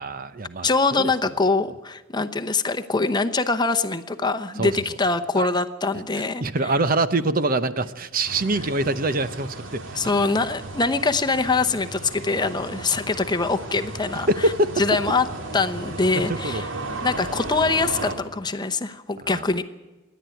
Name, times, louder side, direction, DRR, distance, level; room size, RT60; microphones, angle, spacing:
voice 1, 0.0-1.1 4.6-4.8 5.3-5.5 6.4-10.0 12.7-12.8 14.3-14.8 16.1-16.6 19.2-19.4, right 2 dB, 45° right, 12 dB, 0.8 m, -24 dB
voice 2, 0.6-6.4 10.0-14.3 14.8-15.3 15.5-16.7 17.0-19.6, left 3 dB, 20° left, 8 dB, 0.8 m, -23 dB
sound 1, 8.2-18.1, right 2 dB, 70° right, 2.4 m, -35 dB
27.0 x 11.0 x 9.1 m, 1.2 s
head